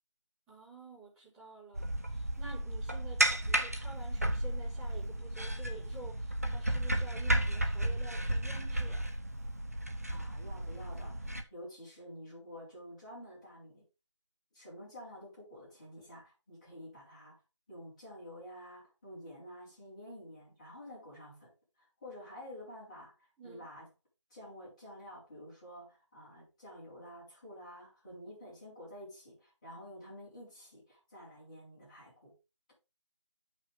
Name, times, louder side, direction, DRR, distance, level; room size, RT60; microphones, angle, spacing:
voice 1, 0.5-1.9 2.1-9.1 23.4-23.7, right 3 dB, 5° right, 2.2 m, -50 dB
sound 1, 1.8-11.4, right 1 dB, 30° right, 0.6 m, -33 dB
voice 2, 10.1-13.8 14.5-17.4 17.7-21.5 21.8-23.1 23.4-23.9 24.3-32.3, equal, 15° left, 4.3 m, -50 dB
9.7 x 5.8 x 3.4 m
figure-of-eight pair, 170°, 16 cm